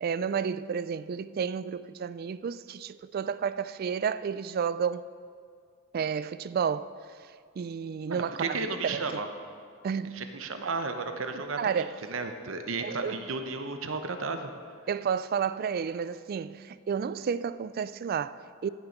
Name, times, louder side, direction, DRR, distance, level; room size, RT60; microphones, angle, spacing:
voice 1, 0.0-5.1 5.9-6.9 7.6-9.0 9.8-10.2 11.6-11.9 12.8-13.2 14.9-18.7, right 7 dB, 50° right, 0.3 m, -31 dB
voice 2, 8.1-9.3 10.1-14.5, right 3 dB, 80° right, 0.9 m, -34 dB
16.0 x 7.1 x 5.2 m
head